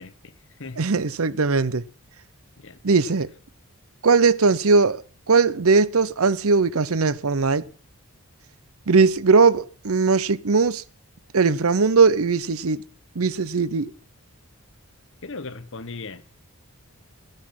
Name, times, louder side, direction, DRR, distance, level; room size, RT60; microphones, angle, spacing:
voice 1, 0.0-0.8 2.6-3.1 15.2-16.2, left 3 dB, 60° left, 1.1 m, -38 dB
voice 2, 0.8-1.8 2.8-3.3 4.0-7.7 8.9-10.8 11.3-12.8 13.1-13.9, right 4 dB, 70° right, 0.7 m, -19 dB
14.5 x 11.0 x 5.9 m
head